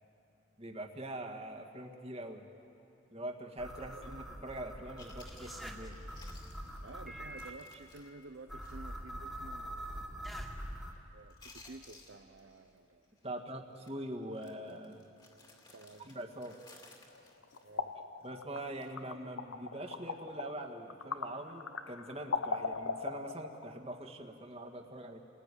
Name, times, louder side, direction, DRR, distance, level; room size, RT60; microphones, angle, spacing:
voice 1, 0.6-2.5 3.1-6.0 13.2-15.1 16.1-16.6 18.2-25.2, right 1 dB, 30° right, 4 dB, 1.8 m, -43 dB
sound 1, 3.6-7.5 8.5-10.9, equal, ahead, 2.1 m, -44 dB
voice 2, 3.8-4.2 6.8-10.4 11.1-13.9 15.7-16.1 17.6-17.9, right 3 dB, 70° right, 7 dB, 0.8 m, -53 dB
Chewing mastication, 5.0-9.0 9.3-9.4 9.9-10.2 10.5-11.0 11.3-12.8 13.0-13.3 13.7-13.9 14.3-18.3 18.7-18.9, left 3 dB, 20° left, 2.4 m, -59 dB
sound 2, 17.1-23.7, left 4 dB, 85° left, 1.0 m, -40 dB
29.5 x 20.0 x 9.9 m, 2.9 s
head